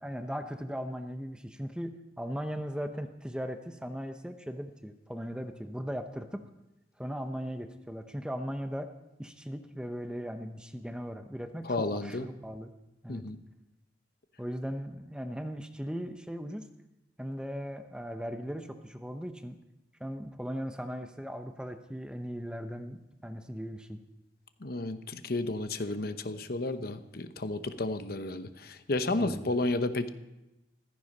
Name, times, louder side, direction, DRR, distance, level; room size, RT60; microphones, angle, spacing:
voice 1, 0.0-6.4 7.0-8.9 9.2-12.7 13.0-13.3 14.4-16.7 17.2-19.6 20.0-24.0 29.1-29.6, equal, 5° right, 7 dB, 0.7 m, -38 dB
voice 2, 11.7-12.2 13.1-13.4 24.6-30.1, left 2 dB, 50° left, 10 dB, 0.9 m, -32 dB
15.5 x 14.0 x 5.3 m, 0.96 s
head